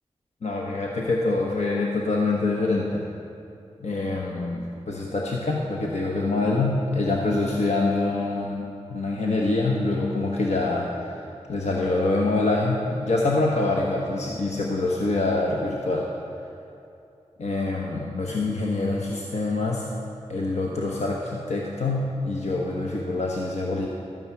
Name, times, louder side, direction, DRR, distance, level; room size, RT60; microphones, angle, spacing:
voice 1, 0.4-3.1 3.8-8.6 8.9-11.1 11.5-16.1 17.4-19.9 20.3-23.9, left 2 dB, 70° left, -2 dB, 1.1 m, -25 dB
12.5 x 9.3 x 5.7 m, 2.7 s
cardioid pair, 50°, 12 cm